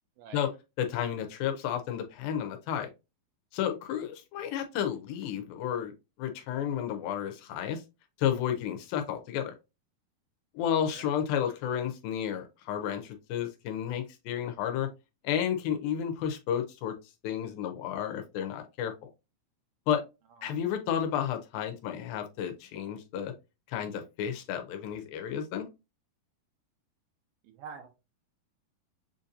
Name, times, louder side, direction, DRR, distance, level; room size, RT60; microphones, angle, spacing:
voice 1, 0.8-2.9 3.5-7.8 8.2-9.5 10.5-14.9 15.2-16.9 17.2-18.9 19.9-20.0 20.4-23.3 23.7-25.7, left 9 dB, 80° left, 2.3 m, -32 dB
voice 2, 27.4-27.9, right 6 dB, 80° right, 2.2 m, -46 dB
6.9 x 2.6 x 2.6 m
omnidirectional pair, 4.4 m